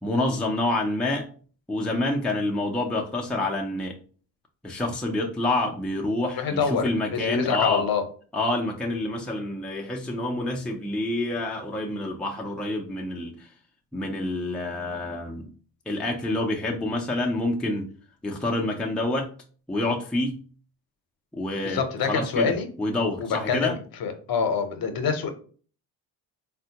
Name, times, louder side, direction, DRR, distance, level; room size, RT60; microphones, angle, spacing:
voice 1, 0.0-1.3 1.7-4.0 4.6-7.8 8.3-13.5 13.9-15.5 15.9-17.9 18.2-19.3 19.7-20.4 21.3-22.5 22.8-23.8, left 2 dB, ahead, -1 dB, 0.5 m, -27 dB
voice 2, 6.4-6.8 7.1-8.0 21.6-22.7 23.2-25.3, left 6 dB, 55° left, 7 dB, 0.8 m, -26 dB
3.4 x 2.2 x 2.8 m, 0.42 s
supercardioid pair, 65°, 43 cm